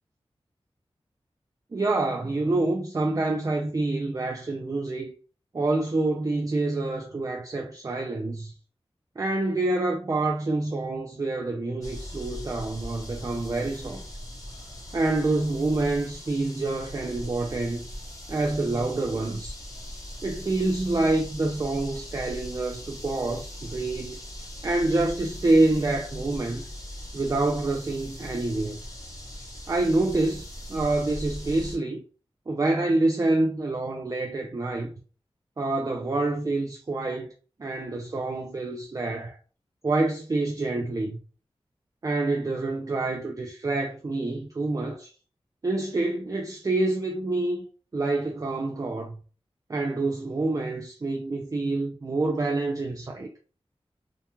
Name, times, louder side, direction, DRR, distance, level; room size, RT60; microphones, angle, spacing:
voice 1, 1.7-5.1 5.5-8.5 9.2-14.0 14.9-17.9 18.3-19.6 20.2-24.2 24.6-26.6 27.1-28.8 29.7-32.0 32.5-34.9 35.6-37.3 37.6-39.4 39.8-41.2 42.0-45.1 45.6-47.6 47.9-49.2 49.7-53.3, right 2 dB, 35° right, 0.4 m, -27 dB
sound 1, 11.8-31.8, equal, 35° left, 0.7 m, -40 dB
2.3 x 2.2 x 2.9 m
wide cardioid pair, 75°, 10 cm